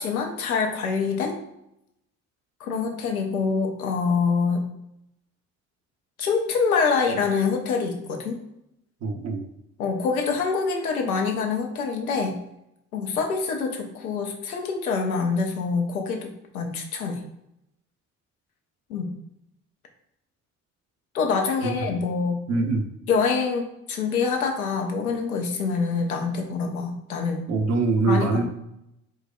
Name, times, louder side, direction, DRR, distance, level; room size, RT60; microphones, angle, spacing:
voice 1, 0.0-1.4 2.6-4.7 6.2-8.4 9.8-12.4 12.9-16.3 16.5-17.2 18.9-19.1 21.1-22.4 23.1-27.5 28.1-28.5, left 5 dB, 85° left, 3 dB, 0.6 m, -25 dB
voice 2, 9.0-9.5 21.6-21.8 22.5-22.9 27.5-28.5, right 3 dB, 40° right, 4 dB, 0.6 m, -23 dB
4.6 x 2.1 x 2.2 m, 0.83 s
figure-of-eight pair, 50°, 42 cm